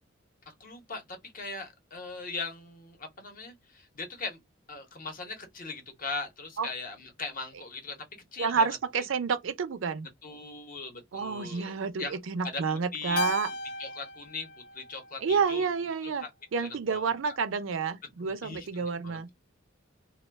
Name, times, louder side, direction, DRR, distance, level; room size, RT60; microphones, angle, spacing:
voice 1, 0.5-4.4 4.7-8.0 8.3-8.7 8.9-9.0 10.2-13.2 13.8-14.5 14.7-15.7 16.0-16.3 16.6-17.1 18.2-19.2, left 3 dB, 45° left, 0.9 m, -40 dB
voice 2, 8.4-10.1 11.1-13.5 15.2-16.2 16.5-19.3, right 5 dB, 70° right, 0.5 m, -29 dB
Keyboard (musical), 13.2-15.7, left 1 dB, 85° left, 0.4 m, -36 dB
2.3 x 2.2 x 3.2 m
head